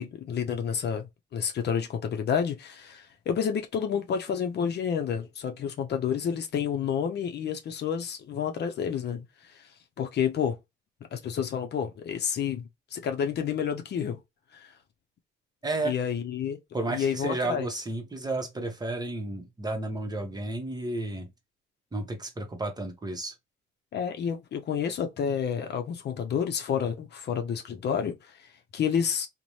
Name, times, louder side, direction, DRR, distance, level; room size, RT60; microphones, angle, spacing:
voice 1, 0.0-9.6 10.0-10.6 11.1-14.2 14.5-14.7 15.8-16.6 16.9-17.7 23.9-29.3, left 7 dB, 60° left, 0.6 m, -30 dB
voice 2, 15.6-15.9 16.7-21.3 21.9-23.3, right 2 dB, 20° right, 0.8 m, -32 dB
2.6 x 2.1 x 3.0 m
cardioid pair, 90°, 20 cm